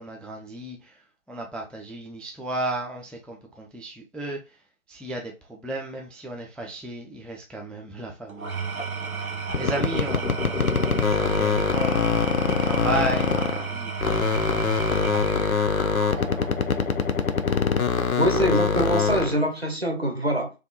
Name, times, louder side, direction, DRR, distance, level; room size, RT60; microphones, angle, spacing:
voice 1, 0.0-4.6 4.9-8.5 9.1-12.3 12.6-15.6 16.2-17.0 17.5-17.7, right 2 dB, 5° left, 0.4 m, -35 dB
Engine / Tools, 8.3-16.6, right 5 dB, 85° right, 0.7 m, -33 dB
sound 1, 9.5-13.7 14.0-19.4, left 5 dB, 80° left, 0.6 m, -24 dB
voice 2, 18.2-20.5, right 1 dB, 50° right, 0.7 m, -24 dB
3.4 x 2.4 x 2.5 m
figure-of-eight pair, 170°, 42 cm